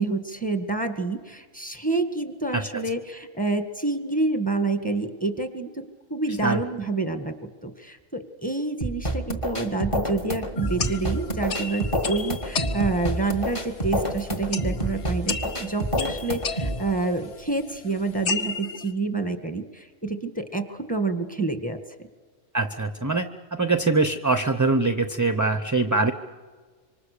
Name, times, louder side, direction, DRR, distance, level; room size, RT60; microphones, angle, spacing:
voice 1, 0.0-5.8 6.1-7.3 7.6-22.1, right 3 dB, 5° left, 7 dB, 1.6 m, -28 dB
sound 1, 8.8-16.8, right 1 dB, 25° left, 1.9 m, -28 dB
sound 2, 10.6-18.9, left 5 dB, 60° left, 1.4 m, -34 dB
voice 2, 22.5-26.1, right 3 dB, 15° right, 10 dB, 0.7 m, -23 dB
26.5 x 25.0 x 6.7 m, 1.5 s
omnidirectional pair, 1.3 m